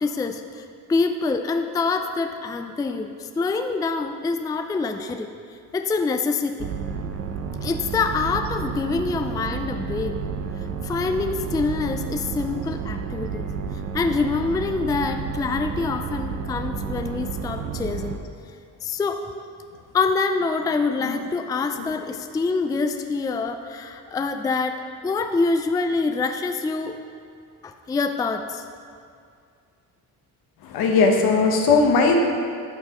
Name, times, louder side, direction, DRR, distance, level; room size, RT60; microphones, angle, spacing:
voice 1, 0.0-5.3 5.7-6.7 7.6-10.2 10.8-13.4 13.9-18.2 18.8-19.2 19.9-27.0 27.6-28.6, left 4 dB, 10° left, 6 dB, 0.3 m, -25 dB
sound 1, 6.6-18.2, right 6 dB, 40° right, 0.7 m, -31 dB
voice 2, 30.6-32.3, left 3 dB, 75° left, 2 dB, 1.1 m, -19 dB
11.0 x 6.1 x 3.0 m, 2.3 s
cardioid pair, 90°, 37 cm